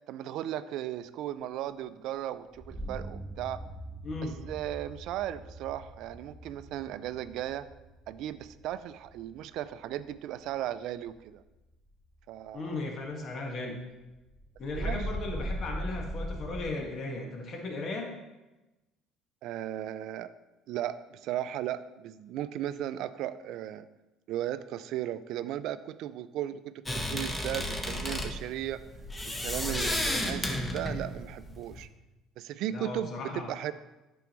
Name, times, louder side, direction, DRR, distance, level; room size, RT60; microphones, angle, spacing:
voice 1, 0.1-3.6 4.5-7.7 8.1-11.4 12.3-12.7 14.7-15.0 19.4-20.3 20.7-23.9 24.3-28.8 29.2-31.9 32.4-33.7, right 12 dB, 70° right, 14 dB, 0.3 m, -36 dB
sound 1, 2.5-11.4 11.8-12.2 12.5-12.6 13.0-13.1 14.1-16.6, equal, 5° right, 1.5 m, -40 dB
voice 2, 4.0-4.3 12.5-13.8 14.6-18.1 32.7-33.5, left 2 dB, 50° left, 1 dB, 1.6 m, -36 dB
sound 2, 26.9-31.9, left 1 dB, 20° left, 1.1 m, -33 dB
8.8 x 6.1 x 3.1 m, 1.0 s
supercardioid pair, 75°, 0 cm